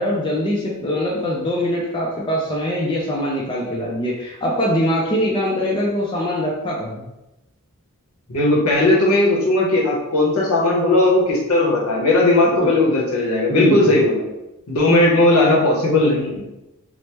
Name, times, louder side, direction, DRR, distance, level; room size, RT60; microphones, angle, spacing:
voice 1, 0.0-7.0 12.5-12.7 13.5-14.0, equal, 20° left, -4 dB, 0.4 m, -22 dB
voice 2, 8.3-14.2 14.7-16.4, left 2 dB, 65° left, -3 dB, 0.8 m, -17 dB
3.2 x 2.0 x 2.9 m, 0.96 s
head